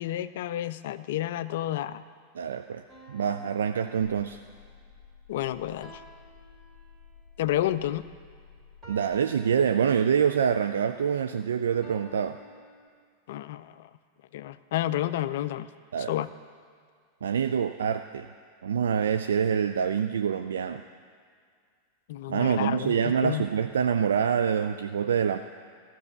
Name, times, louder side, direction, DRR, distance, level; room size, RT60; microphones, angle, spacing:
voice 1, 0.0-2.0 5.3-6.0 7.4-8.1 13.3-13.9 14.3-15.7 16.1-16.3 22.1-23.4, left 13 dB, 55° left, 14 dB, 0.4 m, -30 dB
voice 2, 2.3-4.4 8.9-12.4 15.9-16.1 17.2-18.3 18.6-20.8 22.3-25.4, right 7 dB, 65° right, 9 dB, 0.3 m, -26 dB
sound 1, 2.9-4.7 5.8-7.3 8.8-10.4 11.8-12.9, right 1 dB, 10° right, 2.3 m, -52 dB
sound 2, 4.0-9.1, left 6 dB, 20° left, 1.0 m, -53 dB
14.0 x 6.1 x 8.1 m, 2.1 s
figure-of-eight pair, 90°, 0 cm